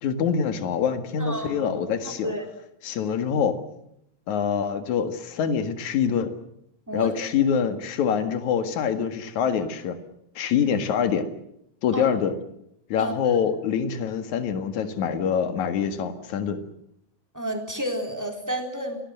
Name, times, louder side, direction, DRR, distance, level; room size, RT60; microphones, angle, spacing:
voice 1, 0.0-2.3 2.8-3.6 4.3-6.3 6.9-10.0 10.4-11.3 11.8-12.3 12.9-16.6, left 7 dB, 70° left, 9 dB, 3.1 m, -25 dB
voice 2, 1.2-1.6 2.2-2.4 6.9-7.1 11.9-12.1 13.0-13.4 17.3-19.0, equal, 5° right, 4 dB, 3.6 m, -31 dB
28.0 x 19.5 x 7.8 m, 0.76 s
omnidirectional pair, 3.5 m